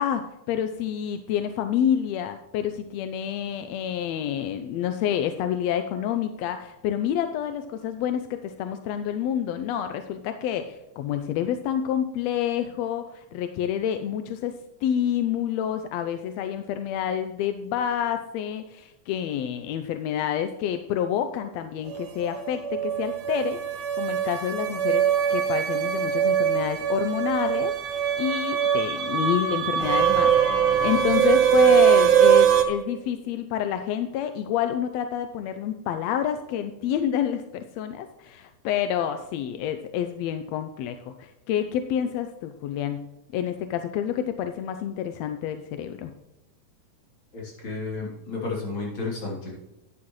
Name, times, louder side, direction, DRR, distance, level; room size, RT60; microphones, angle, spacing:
voice 1, 0.0-25.0 25.3-30.3 30.8-43.0 43.3-46.1, left 9 dB, 80° left, 8 dB, 1.6 m, -28 dB
sound 1, 21.9-32.6, right 9 dB, 80° right, 2.4 m, -22 dB
voice 2, 47.3-49.5, left 3 dB, 40° left, -4 dB, 3.7 m, -32 dB
12.0 x 9.6 x 3.1 m, 0.96 s
omnidirectional pair, 3.5 m